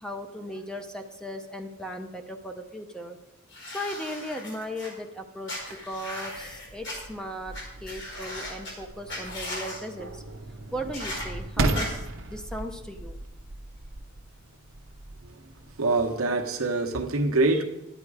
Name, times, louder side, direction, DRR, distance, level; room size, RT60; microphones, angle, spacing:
voice 1, 0.0-3.2 3.7-5.5 5.8-7.5 7.8-10.2 10.7-13.2, equal, 5° left, 5 dB, 0.7 m, -37 dB
sound 1, 3.5-4.9 5.5-6.9 7.5-7.6 7.9-8.7 9.1-9.8 10.9-11.2 11.7-11.9, left 1 dB, 60° left, 4.4 m, -37 dB
sound 2, 5.6-16.5, right 2 dB, 65° right, 0.9 m, -36 dB
voice 2, 15.8-17.6, right 2 dB, 90° right, 3 dB, 1.1 m, -25 dB
10.5 x 9.1 x 4.9 m, 0.95 s
head